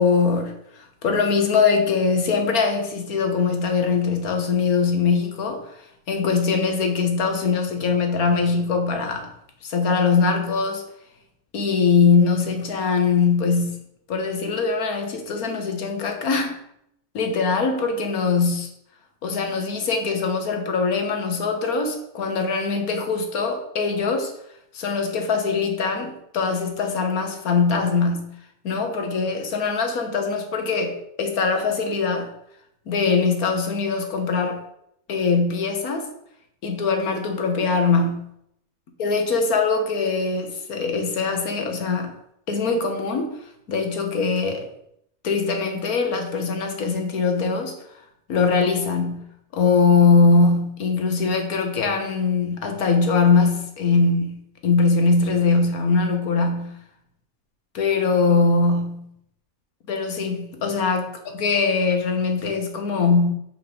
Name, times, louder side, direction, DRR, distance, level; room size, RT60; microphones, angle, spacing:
voice 1, 0.0-5.8 6.1-9.3 9.6-10.9 11.5-13.8 14.1-16.6 17.1-18.7 19.2-24.3 24.7-28.3 28.6-32.3 32.9-34.6 35.1-36.1 36.6-38.3 39.0-42.1 42.5-43.3 43.7-44.7 45.2-47.7 48.3-56.8 57.7-59.1 59.9-61.1 61.4-63.3, left 4 dB, 80° left, 1.6 m, -22 dB
5.7 x 5.4 x 5.1 m
omnidirectional pair, 1.5 m